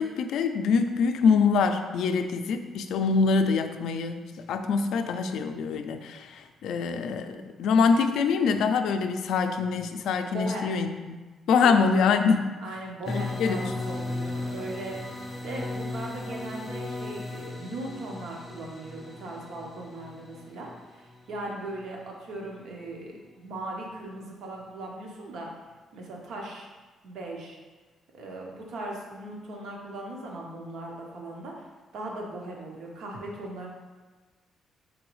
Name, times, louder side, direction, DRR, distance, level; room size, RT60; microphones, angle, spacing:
voice 1, 0.0-4.2 4.5-11.2 11.5-12.5 13.1-13.7, left 5 dB, 75° left, 7 dB, 0.3 m, -24 dB
voice 2, 10.3-10.7 11.6-11.8 12.6-15.0 15.4-25.5 25.9-26.7 27.0-27.6 28.1-31.6 31.9-33.7, right 2 dB, 70° right, -1 dB, 0.8 m, -38 dB
sound 1, 13.0-21.8, left 2 dB, 10° left, 0.5 m, -36 dB
3.9 x 3.8 x 3.0 m, 1.3 s
cardioid pair, 160°, 0 cm